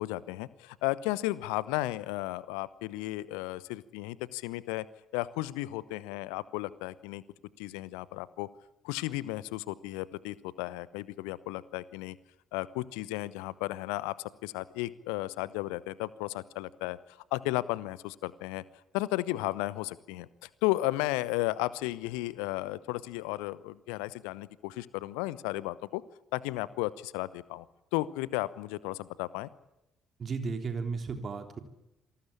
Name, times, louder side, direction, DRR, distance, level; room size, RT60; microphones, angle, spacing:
voice 1, 0.0-4.9 5.1-7.2 7.6-8.5 8.8-12.2 12.5-18.6 18.9-26.0 26.3-27.6 27.9-29.5, left 18 dB, 65° left, 20 dB, 0.9 m, -34 dB
voice 2, 30.2-31.6, right 4 dB, 40° right, 6 dB, 3.5 m, -34 dB
27.5 x 19.0 x 8.6 m, 0.90 s
figure-of-eight pair, 45°, 0 cm